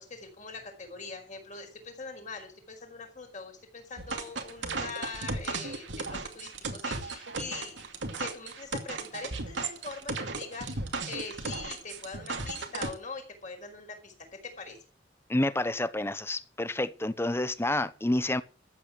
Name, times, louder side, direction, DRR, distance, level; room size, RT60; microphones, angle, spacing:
voice 1, 0.0-7.9 8.2-14.1 14.6-14.8, left 4 dB, 45° left, 5.0 m, -42 dB
sound 1, 4.0-12.9, right 3 dB, 90° right, 2.4 m, -35 dB
voice 2, 15.3-18.4, left 1 dB, 15° left, 0.8 m, -29 dB
13.5 x 8.3 x 6.2 m
head